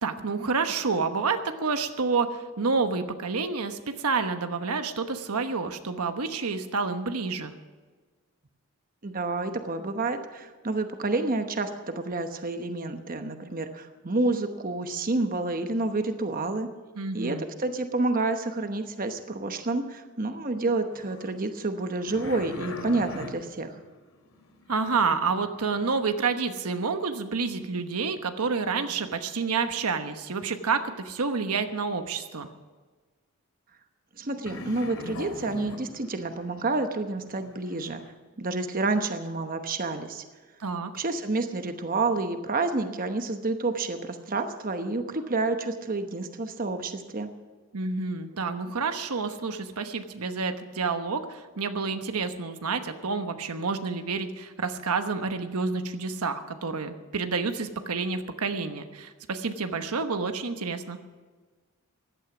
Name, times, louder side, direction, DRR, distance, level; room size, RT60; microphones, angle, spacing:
voice 1, 0.0-7.5 17.0-17.4 24.7-32.5 40.6-40.9 47.7-61.0, right 4 dB, 85° right, 8 dB, 1.1 m, -29 dB
voice 2, 9.0-16.7 17.1-23.7 34.2-38.0 38.4-40.2 40.9-47.3, right 3 dB, 40° right, 7 dB, 1.0 m, -29 dB
sound 1, 20.9-26.0 34.5-38.1, left 2 dB, 80° left, 2.4 m, -43 dB
16.0 x 11.5 x 6.1 m, 1.4 s
head